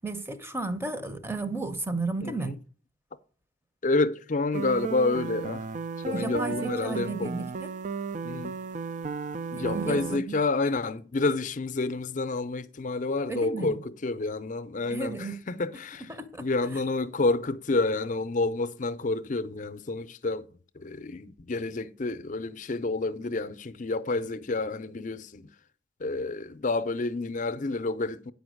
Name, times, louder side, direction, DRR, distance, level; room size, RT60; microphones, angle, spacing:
voice 1, 0.0-2.6 6.1-7.7 9.5-10.4 13.3-13.8 14.9-15.4 16.1-16.5 16.7-16.8, right 3 dB, 15° right, 0.7 m, -33 dB
voice 2, 2.2-2.5 3.8-5.7 6.0-7.4 8.2-8.5 9.5-16.1 16.4-20.5 20.8-25.5 26.0-28.3, left 3 dB, 45° left, 0.5 m, -29 dB
sound 1, 4.5-10.2, right 4 dB, 40° right, 0.3 m, -34 dB
8.6 x 5.2 x 6.3 m
head